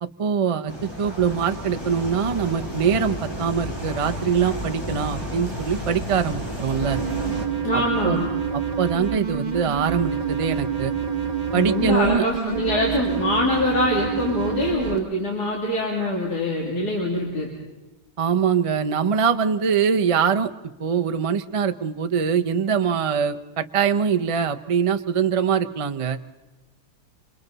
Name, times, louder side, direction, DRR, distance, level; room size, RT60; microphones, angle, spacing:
voice 1, 0.0-7.0 7.7-8.2 8.5-10.9 11.5-12.2 18.2-20.5 20.8-26.2, right 7 dB, 55° right, 7 dB, 0.3 m, -23 dB
sound 1, 0.7-7.4, equal, 15° left, 3.7 m, -32 dB
sound 2, 6.8-15.0, right 7 dB, 30° right, 1.3 m, -27 dB
voice 2, 7.6-8.3 11.5-17.5, left 1 dB, 70° left, -3 dB, 3.6 m, -24 dB
27.0 x 26.5 x 4.1 m, 1.1 s
omnidirectional pair, 1.8 m